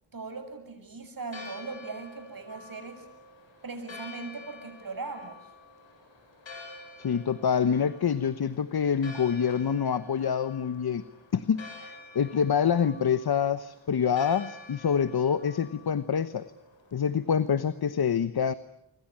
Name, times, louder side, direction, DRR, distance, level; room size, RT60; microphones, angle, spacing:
voice 1, 0.1-3.1 3.6-5.5, right 4 dB, 50° right, 7 dB, 7.6 m, -39 dB
Church bell, 1.2-17.8, left 3 dB, 80° left, 7.8 m, -48 dB
voice 2, 7.0-11.0 11.3-16.4 16.9-18.5, left 7 dB, 55° left, 13 dB, 1.2 m, -26 dB
26.5 x 25.0 x 8.8 m, 0.80 s
cardioid pair, 60°, 45 cm